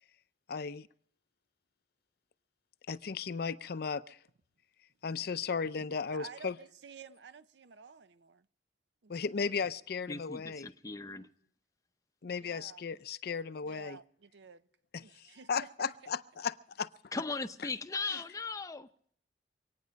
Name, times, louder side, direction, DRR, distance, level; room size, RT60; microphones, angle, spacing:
voice 1, 0.5-0.9 2.9-4.2 5.0-6.6 9.1-10.7 12.2-14.0 14.9-16.9 18.1-18.2, left 5 dB, 60° left, 0.5 m, -36 dB
voice 2, 6.1-8.5 9.0-9.1 11.0-11.3 12.4-12.8 13.6-14.7 15.0-16.1, right 5 dB, 75° right, 0.6 m, -52 dB
voice 3, 10.1-11.3 17.1-19.1, left 3 dB, 20° left, 0.6 m, -38 dB
25.0 x 9.5 x 5.2 m
head